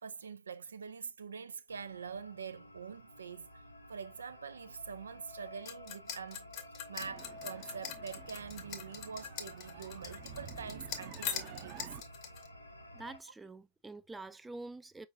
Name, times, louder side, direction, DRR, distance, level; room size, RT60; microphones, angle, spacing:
voice 1, 0.0-3.6 3.9-6.5 6.9-12.0, right 6 dB, 70° right, 0.4 m, -45 dB
sound 1, 1.7-13.2, left 1 dB, 85° left, 0.8 m, -52 dB
sound 2, 5.7-12.5, left 9 dB, 45° left, 1.1 m, -42 dB
sound 3, 7.0-12.0, right 8 dB, 40° right, 0.7 m, -51 dB
voice 2, 12.9-15.1, right 2 dB, 10° right, 0.4 m, -46 dB
5.3 x 3.8 x 2.2 m
figure-of-eight pair, 90°, 0 cm